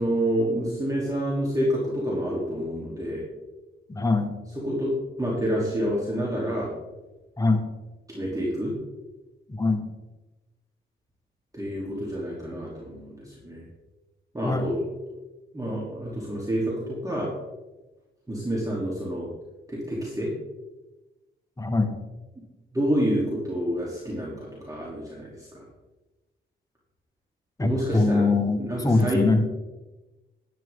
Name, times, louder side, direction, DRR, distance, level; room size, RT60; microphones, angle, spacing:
voice 1, 0.0-3.2 4.6-4.9 5.2-6.7 8.1-8.7 11.5-13.6 14.3-14.8 15.5-17.3 18.3-19.3 19.7-20.3 22.7-25.6 27.6-28.2 28.6-29.2, equal, 15° right, -5 dB, 2.9 m, -28 dB
voice 2, 3.9-4.3 7.4-7.7 9.5-9.9 14.4-14.7 21.6-21.9 27.6-29.4, left 3 dB, 15° left, 6 dB, 1.4 m, -23 dB
10.5 x 10.5 x 3.6 m, 1.1 s
cardioid pair, 75°, 20 cm